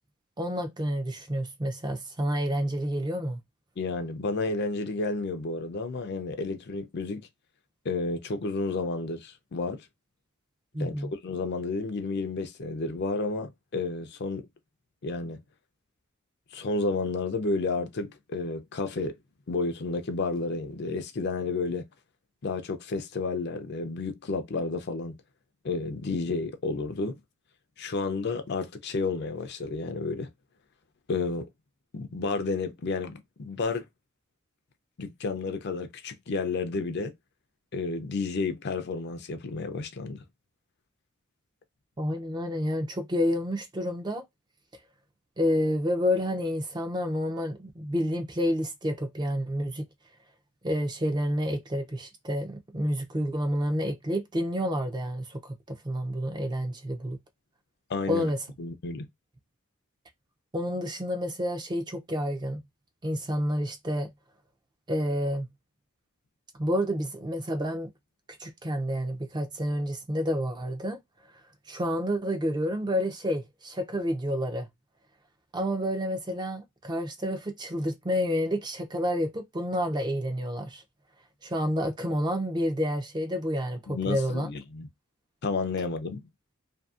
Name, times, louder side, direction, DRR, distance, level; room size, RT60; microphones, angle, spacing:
voice 1, 0.4-3.4 10.7-11.1 42.0-44.2 45.4-49.9 50.6-57.2 58.1-58.4 60.5-62.6 63.0-64.1 64.9-65.5 66.5-67.9 68.4-71.0 71.7-74.7 75.5-80.8 81.4-84.5, equal, 20° right, 0.4 m, -29 dB
voice 2, 3.8-7.3 7.8-9.9 10.8-14.5 15.0-15.4 16.5-19.2 19.5-21.9 22.4-25.2 25.6-27.2 27.8-30.3 31.1-31.5 31.9-33.9 35.0-37.1 37.7-40.2 57.9-58.3 58.6-59.1 83.9-84.9 85.4-86.2, left 3 dB, 50° left, 0.5 m, -31 dB
2.7 x 2.6 x 2.4 m
head